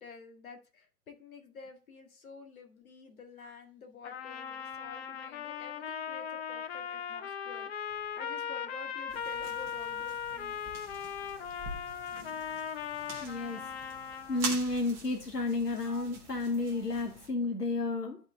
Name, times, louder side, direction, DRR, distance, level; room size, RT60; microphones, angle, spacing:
voice 1, 0.0-7.7 8.2-10.6 15.8-16.2 16.6-17.0, left 4 dB, 60° left, 1.8 m, -50 dB
Trumpet, 4.0-14.5, left 7 dB, 45° left, 0.7 m, -38 dB
sound 1, 9.1-17.3, right 3 dB, 5° right, 0.5 m, -44 dB
voice 2, 13.2-13.7 14.3-18.2, left 3 dB, 85° left, 1.1 m, -32 dB
10.5 x 4.5 x 3.5 m
figure-of-eight pair, 120°, 47 cm